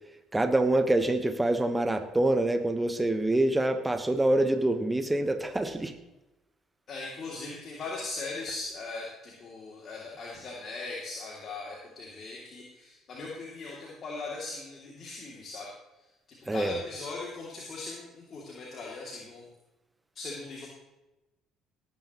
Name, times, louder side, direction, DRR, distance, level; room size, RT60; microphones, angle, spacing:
voice 1, 0.3-5.9 16.5-16.8, right 1 dB, 15° right, 8 dB, 1.1 m, -26 dB
voice 2, 6.9-15.7 16.5-19.5 20.1-20.7, left 3 dB, 50° left, -3 dB, 2.6 m, -39 dB
18.5 x 9.7 x 3.0 m, 1.0 s
hypercardioid pair, 55°, 0 cm